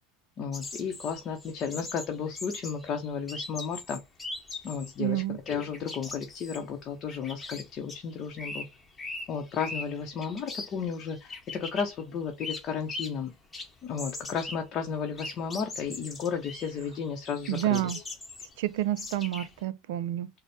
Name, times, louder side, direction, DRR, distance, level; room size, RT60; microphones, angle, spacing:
voice 1, 0.4-4.0 4.6-8.7 9.3-13.3 13.8-18.0, left 6 dB, 40° left, 0.6 m, -33 dB
sound 1, 0.5-5.0 5.3-13.3 13.5-19.6, left 3 dB, 15° left, 0.9 m, -41 dB
voice 2, 5.0-5.4 17.5-18.0 18.6-20.3, right 14 dB, 75° right, 0.4 m, -29 dB
4.0 x 2.0 x 3.3 m
supercardioid pair, 130°, 0 cm